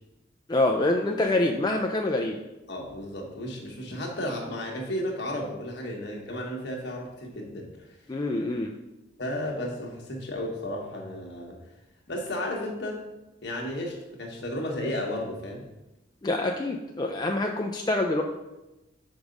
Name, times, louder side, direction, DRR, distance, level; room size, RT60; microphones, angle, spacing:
voice 1, 0.5-2.4 8.1-8.7 16.2-18.2, left 2 dB, 20° left, 2 dB, 0.4 m, -26 dB
voice 2, 2.7-7.9 9.2-11.6 12.1-13.0 13.4-15.7, left 1 dB, 60° left, 0 dB, 1.4 m, -33 dB
5.3 x 4.8 x 5.2 m, 0.98 s
head